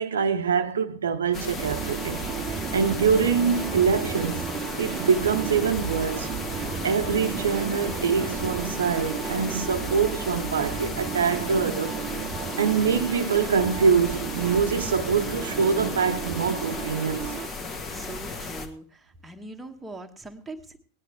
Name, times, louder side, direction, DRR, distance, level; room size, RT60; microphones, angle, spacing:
voice 1, 0.0-4.5 4.8-6.3 6.8-12.0 12.6-17.3, right 6 dB, 65° right, 0.7 m, -24 dB
sound 1, 1.3-18.7, left 3 dB, 30° left, 1.6 m, -35 dB
sound 2, 1.6-17.5, right 9 dB, 30° right, 0.8 m, -34 dB
voice 2, 17.6-20.8, right 2 dB, 5° right, 1.3 m, -42 dB
18.5 x 10.0 x 3.4 m
figure-of-eight pair, 90°, 0 cm